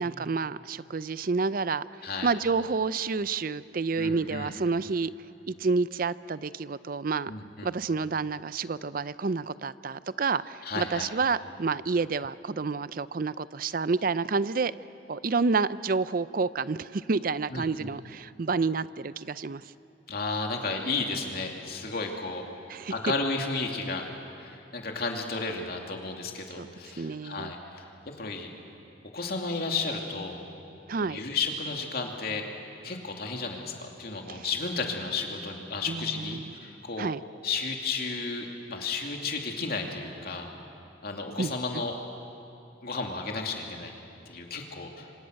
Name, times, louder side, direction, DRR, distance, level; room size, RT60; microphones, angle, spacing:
voice 1, 0.0-5.1 5.5-7.3 7.6-14.7 15.1-19.6 22.7-22.9 26.6-26.7 27.0-27.5 30.9-31.2 34.3-34.4 35.9-36.4 37.0-37.2 41.4-41.8, right 4 dB, 50° right, 16 dB, 0.5 m, -29 dB
voice 2, 4.0-4.6 7.3-7.7 10.6-11.1 17.5-17.9 20.1-22.4 22.9-24.0 24.4-28.5 29.1-30.4 31.0-32.4 32.8-37.1 37.4-40.5 41.0-42.0 42.8-43.9 44.3-45.1, left 4 dB, 55° left, 1 dB, 2.7 m, -33 dB
27.0 x 26.0 x 6.5 m, 2.8 s
head